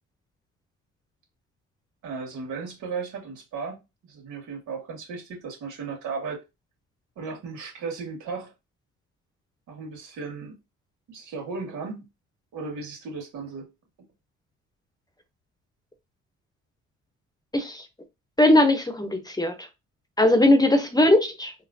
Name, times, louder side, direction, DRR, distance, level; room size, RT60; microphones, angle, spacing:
voice 1, 2.0-3.8 4.1-6.4 7.2-8.5 9.7-10.5 11.1-12.1 12.5-13.7, right 4 dB, 85° right, 2.4 m, -35 dB
voice 2, 17.5-17.8 18.4-19.7 20.2-21.5, left 1 dB, 15° left, 0.8 m, -19 dB
4.3 x 3.2 x 2.7 m
cardioid pair, 90°, 30 cm